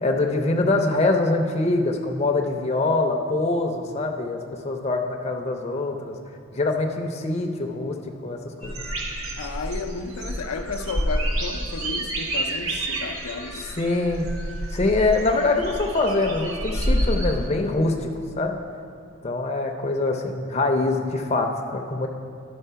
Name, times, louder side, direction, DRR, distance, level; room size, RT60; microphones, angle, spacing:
voice 1, 0.0-6.1 6.5-8.0 8.2-8.8 13.8-14.3 14.7-18.1 18.4-18.6 19.2-22.1, left 2 dB, 30° left, 2 dB, 0.6 m, -24 dB
sound 1, 8.6-17.5, right 1 dB, 75° right, 1.1 m, -28 dB
voice 2, 9.4-14.2, left 4 dB, 90° left, 6 dB, 0.5 m, -33 dB
11.0 x 4.3 x 5.6 m, 2.4 s
head